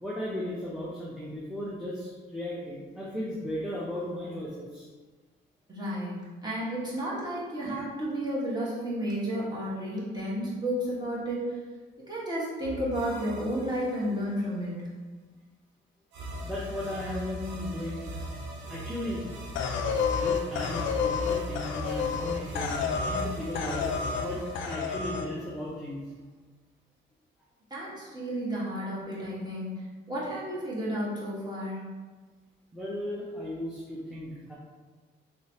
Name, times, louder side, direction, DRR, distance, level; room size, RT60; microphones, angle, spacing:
voice 1, 0.0-4.9 7.6-7.8 16.4-18.1 18.7-19.2 20.1-23.9 24.2-26.0 32.7-34.5, left 1 dB, 5° right, -7 dB, 0.6 m, -36 dB
voice 2, 5.7-11.6 12.1-14.8 27.7-31.9, equal, 20° right, -7 dB, 1.3 m, -32 dB
sound 1, 12.6-14.5 16.1-25.9, equal, 70° right, 0.7 m, -40 dB
sound 2, 19.6-23.3 23.6-24.3 24.6-25.3, left 6 dB, 75° left, 0.4 m, -29 dB
3.2 x 3.0 x 2.8 m, 1.4 s
cardioid pair, 90°, 20 cm